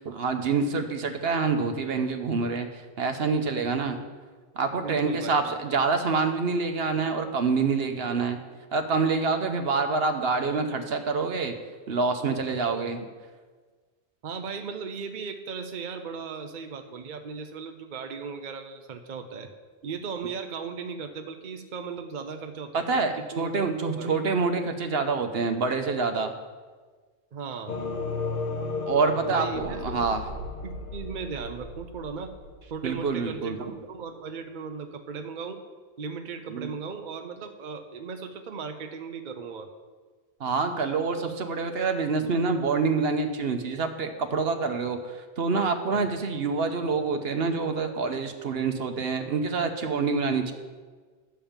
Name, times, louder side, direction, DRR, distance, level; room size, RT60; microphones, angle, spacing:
voice 1, 0.0-2.7 3.0-4.0 4.5-8.4 8.7-11.5 11.9-13.1 22.7-26.3 28.9-30.2 32.8-33.7 36.5-36.7 40.4-45.0 45.4-50.5, right 4 dB, 70° right, 6 dB, 1.1 m, -26 dB
voice 2, 4.7-5.5 14.2-19.5 19.8-24.1 27.3-27.8 29.2-30.2 30.6-32.3 32.7-35.6 36.0-39.7 45.9-46.1, right 5 dB, 50° right, 6 dB, 0.8 m, -37 dB
sound 1, 27.7-33.4, left 3 dB, 55° left, 1.2 m, -34 dB
11.0 x 5.3 x 7.3 m, 1.4 s
omnidirectional pair, 1.1 m